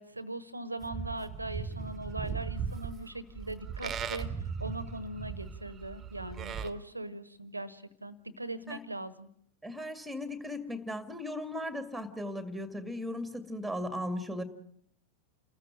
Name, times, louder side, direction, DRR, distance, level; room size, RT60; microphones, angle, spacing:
voice 1, 0.0-9.3, right 1 dB, 85° right, 16 dB, 1.2 m, -40 dB
Livestock farm animals working animals, 0.8-6.7, right 6 dB, 25° right, 1.3 m, -38 dB
voice 2, 9.6-14.4, left 1 dB, ahead, 10 dB, 2.2 m, -37 dB
29.5 x 14.5 x 7.4 m, 0.67 s
figure-of-eight pair, 90°, 0 cm